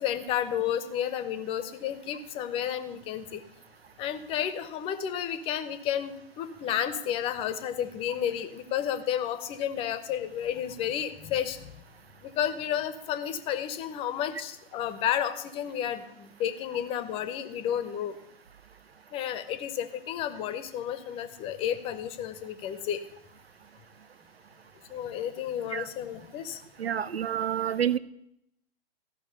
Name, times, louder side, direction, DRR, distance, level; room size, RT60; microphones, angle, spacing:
voice 1, 0.0-3.4 4.0-11.6 12.2-18.2 19.1-23.0 24.9-26.6, left 10 dB, 20° left, 11 dB, 0.7 m, -31 dB
voice 2, 26.8-28.0, right 9 dB, 80° right, 17 dB, 0.6 m, -28 dB
14.0 x 6.0 x 6.8 m, 0.79 s
figure-of-eight pair, 120°, 30 cm